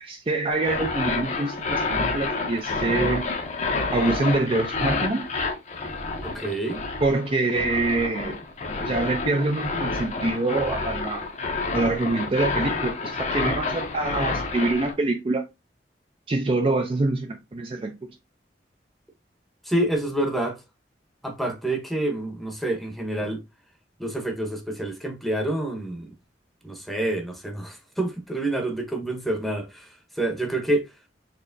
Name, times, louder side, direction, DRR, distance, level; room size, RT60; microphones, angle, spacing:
voice 1, 0.0-3.3 3.9-5.2 7.0-8.4 8.8-11.3 11.7-15.4 16.3-18.1, right 2 dB, 30° right, 0.4 m, -25 dB
sound 1, 0.5-14.9, left 3 dB, 40° left, 0.7 m, -29 dB
voice 2, 6.2-6.8 19.6-20.6 21.2-23.4 24.0-26.1 26.6-30.9, right 1 dB, ahead, 0.8 m, -28 dB
4.3 x 3.1 x 2.6 m
head